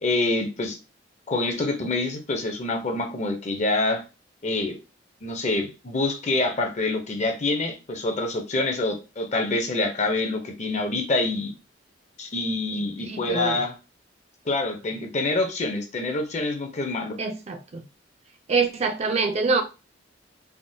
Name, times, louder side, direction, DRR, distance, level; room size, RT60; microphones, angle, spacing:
voice 1, 0.0-0.8 1.3-4.0 4.4-4.8 5.2-11.5 12.2-13.8 14.5-17.2, left 2 dB, 40° left, 0.6 m, -26 dB
voice 2, 12.7-13.6 17.2-17.8 18.5-19.6, right 4 dB, 35° right, 0.4 m, -25 dB
3.4 x 2.1 x 2.6 m
head